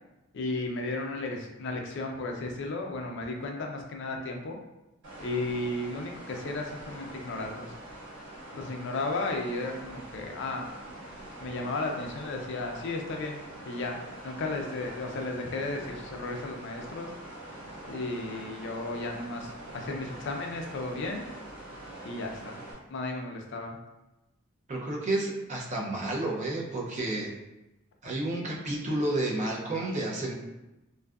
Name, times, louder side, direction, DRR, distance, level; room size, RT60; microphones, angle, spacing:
voice 1, 0.3-4.6 5.2-7.7 8.5-10.6 11.4-13.4 13.7-14.0 14.2-17.1 17.9-21.2 22.0-22.6 22.9-23.8, left 2 dB, 60° left, 2 dB, 0.4 m, -34 dB
sound 1, 5.0-22.7, right 1 dB, 55° right, 1.1 m, -44 dB
voice 2, 24.7-27.3 28.0-30.3, right 2 dB, 35° right, -2 dB, 0.5 m, -31 dB
2.5 x 2.3 x 2.3 m, 0.98 s
head